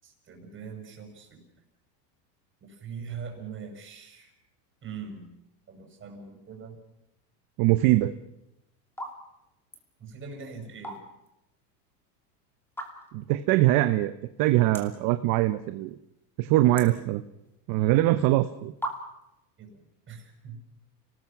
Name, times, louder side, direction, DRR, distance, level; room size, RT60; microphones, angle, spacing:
voice 1, 0.0-1.4 2.6-4.3 4.8-5.3 5.7-6.8 10.0-11.0 19.6-19.8 20.1-20.6, right 6 dB, 25° right, 3 dB, 6.0 m, -42 dB
voice 2, 7.6-8.1 13.1-14.1 14.4-16.0 16.4-17.2 17.7-18.7, right 16 dB, 45° right, 10 dB, 0.8 m, -22 dB
sound 1, 8.1-8.4 8.9-9.2 9.5-9.9 10.6-11.3 11.7-11.8 12.7-13.2 13.8-13.9 14.1-14.2 14.7-15.1 15.4-15.9 16.2-17.6 18.3-18.4 18.8-19.4, right 1 dB, 5° left, 2.7 m, -37 dB
29.5 x 19.5 x 6.0 m, 0.87 s
supercardioid pair, 140°, 49 cm